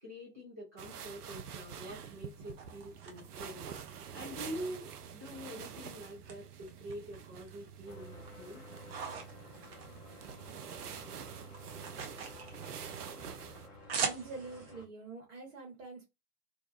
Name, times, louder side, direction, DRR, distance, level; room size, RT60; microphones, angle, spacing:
voice 1, 0.0-3.7 4.1-8.7, equal, 10° right, 0.3 m, -45 dB
sound 1, 0.8-13.7, right 8 dB, 80° right, 0.5 m, -47 dB
sound 2, 2.2-4.8 5.2-6.3 6.7-7.7 8.0-10.6 10.9-14.7, right 5 dB, 40° right, 0.7 m, -43 dB
sound 3, 7.9-14.9, left 1 dB, 15° left, 0.9 m, -53 dB
voice 2, 14.0-16.1, right 3 dB, 55° right, 1.2 m, -45 dB
2.6 x 2.2 x 2.3 m
figure-of-eight pair, 105°, 46 cm